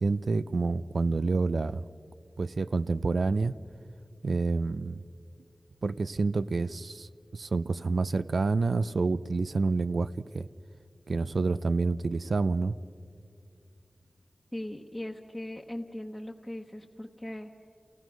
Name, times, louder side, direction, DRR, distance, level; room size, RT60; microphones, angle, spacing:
voice 1, 0.0-1.8 2.4-3.5 4.2-5.0 5.8-10.1 10.3-10.5 11.1-12.7, right 3 dB, 80° right, 15 dB, 0.5 m, -28 dB
voice 2, 14.5-17.5, left 1 dB, 10° left, -2 dB, 1.1 m, -39 dB
29.5 x 17.0 x 6.1 m, 2.3 s
wide cardioid pair, 75°, 0 cm